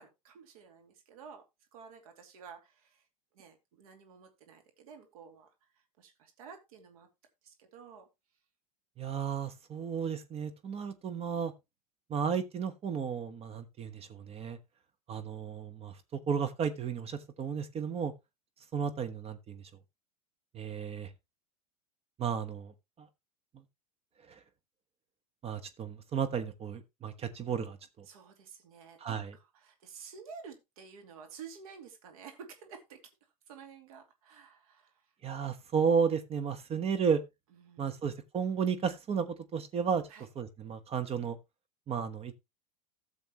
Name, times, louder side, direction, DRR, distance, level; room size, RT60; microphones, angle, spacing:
voice 1, 0.0-1.4 1.7-3.0 3.3-5.5 6.0-7.1 7.4-8.1 28.1-33.0 33.5-34.9 37.5-38.0 40.1-40.3, right 6 dB, 70° right, 2.6 m, -51 dB
voice 2, 9.0-11.5 12.1-14.6 15.1-15.9 16.3-18.1 18.7-19.6 20.5-21.1 22.2-22.7 23.0-23.1 25.4-28.0 29.0-29.3 35.2-37.2 37.8-39.3 39.5-40.0 40.4-41.4 41.9-42.4, right 6 dB, 30° right, 1.2 m, -33 dB
14.0 x 7.1 x 3.0 m
hypercardioid pair, 95°, 19 cm